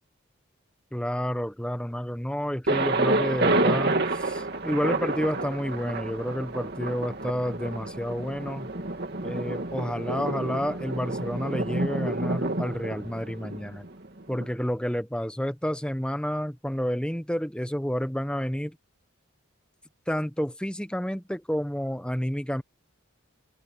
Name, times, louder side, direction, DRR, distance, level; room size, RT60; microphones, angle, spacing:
voice 1, 0.9-8.7 9.2-13.9 14.3-18.8 20.1-22.6, equal, 5° left, 1.0 m, -30 dB
Thunder, 2.7-14.5, right 2 dB, 50° right, 2.7 m, -29 dB
head